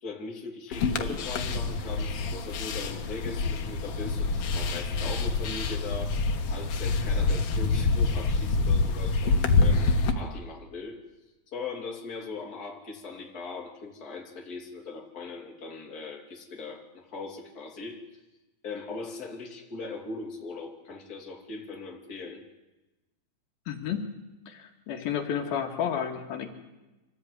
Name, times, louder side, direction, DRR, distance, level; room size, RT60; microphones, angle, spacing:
voice 1, 0.0-6.2 6.5-11.0 11.5-18.0 18.6-22.4, left 4 dB, 25° left, 0 dB, 3.3 m, -40 dB
sound 1, 0.7-10.1, left 3 dB, 60° left, 1.7 m, -26 dB
voice 2, 23.7-24.1 24.5-26.5, left 8 dB, 75° left, 4 dB, 3.4 m, -31 dB
25.0 x 16.0 x 9.5 m, 1.1 s
omnidirectional pair, 4.4 m